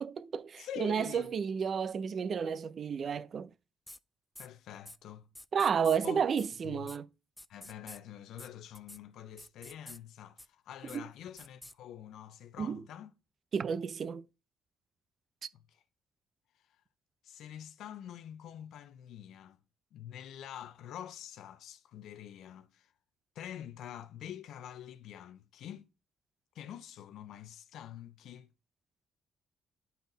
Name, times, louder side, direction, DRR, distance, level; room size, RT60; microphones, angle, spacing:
voice 1, 0.0-3.5 5.5-7.1 10.9-11.0 12.6-12.8 13.5-14.2, right 7 dB, 50° right, 0.6 m, -31 dB
voice 2, 0.6-1.4 4.4-5.3 6.0-6.2 6.6-6.9 7.5-13.1 15.5-15.8 17.2-19.6 19.9-22.9 23.3-25.9 26.5-28.5, left 10 dB, 80° left, 0.6 m, -46 dB
sound 1, 3.9-4.0 4.4-4.5 4.9-5.0 5.4-6.0 6.4-6.5 6.9-7.0 7.4-8.0 8.4-8.5 8.7-9.0 9.4-10.0 10.4-10.5 10.9-11.0 11.4-11.7, left 1 dB, 10° left, 0.4 m, -49 dB
10.5 x 4.1 x 4.0 m
cardioid pair, 90°, 0 cm